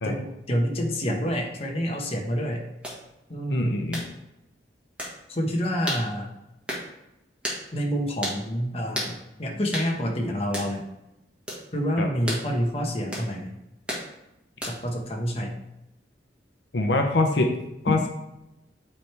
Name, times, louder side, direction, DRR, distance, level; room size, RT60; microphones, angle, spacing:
voice 1, 0.0-2.6 3.3-3.8 5.3-6.3 7.7-10.8 11.7-13.5 14.6-15.5, equal, 30° left, 0 dB, 1.0 m, -28 dB
sound 1, 2.8-3.0 3.9-4.1 5.0-5.2 5.9-6.1 6.7-6.9 7.4-7.6 8.2-8.4 8.9-9.1 9.7-9.9 10.5-10.7 11.5-11.6 12.3-12.5 13.1-13.3 13.9-14.1 14.6-14.9, equal, 5° right, 1.5 m, -32 dB
voice 2, 3.5-4.1 12.0-12.1 16.7-17.5 17.8-18.1, left 2 dB, 70° left, 4 dB, 0.7 m, -23 dB
8.5 x 3.4 x 4.5 m, 0.90 s
head